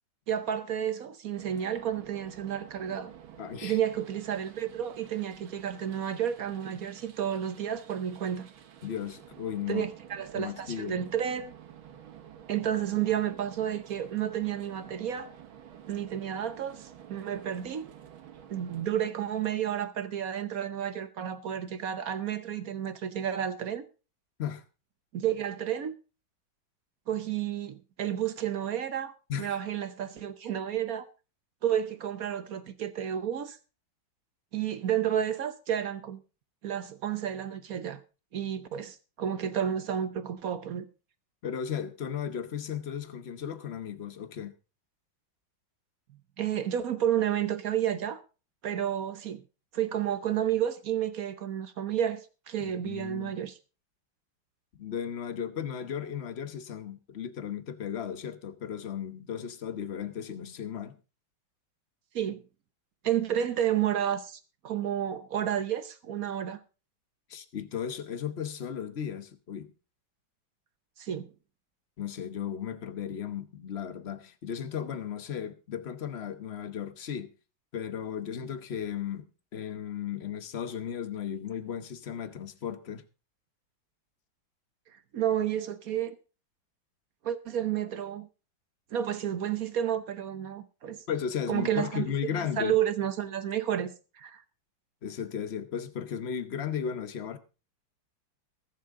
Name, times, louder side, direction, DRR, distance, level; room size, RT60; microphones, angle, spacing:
voice 1, 0.3-3.1 3.6-8.5 9.7-11.5 12.5-15.3 15.9-17.9 18.5-23.8 25.1-25.9 27.1-31.0 31.6-33.6 34.5-36.2 36.6-38.0 38.3-40.9 46.4-48.2 48.6-49.4 49.7-53.6 62.1-62.4 63.0-66.6 71.0-71.3 85.1-86.1 87.2-88.3 88.9-91.0 91.5-92.1 92.3-93.9 94.2-94.4, right 10 dB, 55° right, 1.1 m, -31 dB
sound 1, 1.3-18.9, right 9 dB, 85° right, 2.0 m, -51 dB
voice 2, 3.4-3.8 8.8-9.9 10.3-11.0 24.4-24.6 29.3-29.6 41.4-44.5 52.6-53.4 54.8-60.9 67.3-69.7 72.0-77.3 77.7-79.3 79.5-83.0 91.1-92.8 95.0-97.4, left 8 dB, 45° left, 0.9 m, -35 dB
22.5 x 7.5 x 3.7 m
omnidirectional pair, 2.2 m